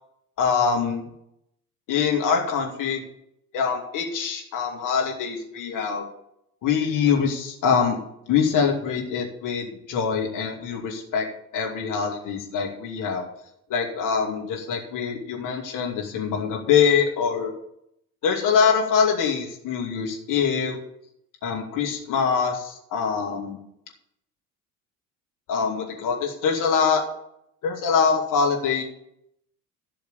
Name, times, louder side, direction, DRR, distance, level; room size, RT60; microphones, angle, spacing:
voice 1, 0.4-1.0 1.9-3.0 3.5-6.1 6.6-8.0 8.3-11.3 11.5-13.2 13.7-17.5 18.2-20.8 21.4-23.6 25.5-27.0 27.6-28.8, left 6 dB, 45° left, 1 dB, 2.6 m, -24 dB
12.5 x 6.4 x 7.0 m, 0.74 s
figure-of-eight pair, 60°, 44 cm